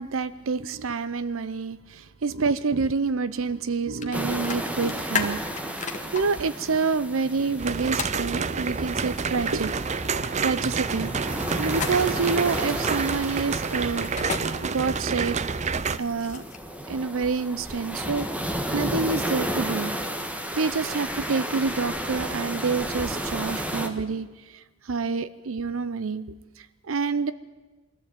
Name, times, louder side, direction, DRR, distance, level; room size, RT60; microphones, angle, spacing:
voice 1, 0.0-9.7 10.4-11.1 11.6-14.1 14.6-15.4 16.0-16.4 16.9-18.3 18.7-19.9 20.6-26.3 26.6-27.3, right 4 dB, 80° right, 16 dB, 0.6 m, -27 dB
sound 1, 4.0-4.1 4.4-6.2 8.0-8.2 11.7-12.3 14.0-14.4 15.8-16.7, left 6 dB, 35° left, 1.7 m, -31 dB
sound 2, 4.1-23.9, right 1 dB, 5° right, 1.4 m, -33 dB
sound 3, 7.6-16.0, right 5 dB, 35° right, 0.5 m, -29 dB
22.0 x 14.0 x 9.0 m, 1.2 s
head